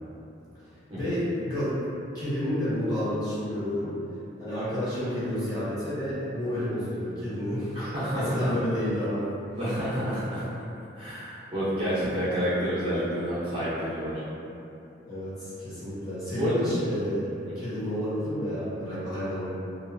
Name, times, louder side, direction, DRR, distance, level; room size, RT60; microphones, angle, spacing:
voice 1, 1.0-1.7 2.1-4.0 4.4-7.8 8.1-9.3 12.4-12.5 15.1-17.3 17.5-19.5, equal, 20° left, -14 dB, 1.0 m, -30 dB
voice 2, 7.7-8.5 9.6-10.4 11.0-14.2 16.3-16.7, equal, 30° right, -13 dB, 0.7 m, -29 dB
2.6 x 2.3 x 2.5 m, 2.8 s
head